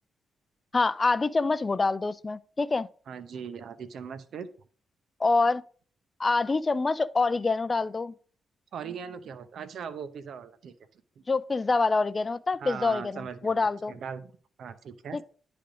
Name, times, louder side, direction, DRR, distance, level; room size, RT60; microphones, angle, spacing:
voice 1, 0.7-2.9 5.2-5.6 6.2-8.1 11.3-13.9 15.1-15.2, left 3 dB, 35° left, 0.4 m, -26 dB
voice 2, 3.1-4.5 8.7-10.7 12.6-14.3 14.6-15.2, right 7 dB, 65° right, 0.7 m, -39 dB
10.0 x 3.5 x 4.9 m
hypercardioid pair, 40°, 0 cm